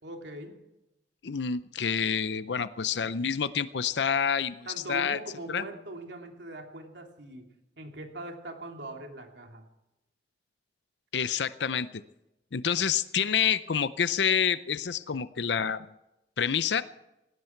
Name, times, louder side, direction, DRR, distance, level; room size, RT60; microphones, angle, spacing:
voice 1, 0.0-0.5 4.6-7.5 7.8-9.7, right 1 dB, 80° right, 3 dB, 2.9 m, -41 dB
voice 2, 1.2-5.2 5.5-5.6 11.1-11.9 12.5-15.9 16.4-16.8, left 7 dB, 80° left, 14 dB, 0.6 m, -28 dB
18.0 x 17.0 x 4.6 m, 0.93 s
head